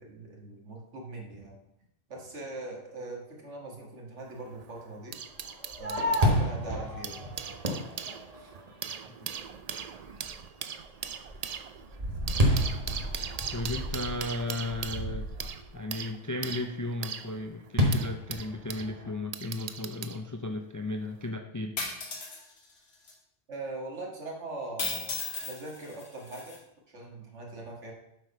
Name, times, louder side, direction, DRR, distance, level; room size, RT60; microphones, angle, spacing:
voice 1, 0.0-1.6 2.1-5.2 5.8-7.3 8.3-8.5 23.5-26.6 26.9-27.9, right 2 dB, 85° right, -1 dB, 2.1 m, -41 dB
sound 1, 4.2-6.3 6.9-18.9 19.3-20.2 21.1-21.3, right 7 dB, 65° right, 0.3 m, -40 dB
Fireworks, 5.4-8.9 9.4-9.5 10.0-10.4 10.8-15.7 17.8-19.1, equal, 35° right, 1.3 m, -30 dB
voice 2, 13.5-15.3 15.7-21.8, left 2 dB, 30° left, 5 dB, 0.3 m, -35 dB
sound 2, 21.8-22.4 23.1-23.2 24.8-26.6, left 4 dB, 60° left, 1.5 m, -35 dB
7.5 x 5.0 x 5.5 m, 0.80 s
omnidirectional pair, 1.2 m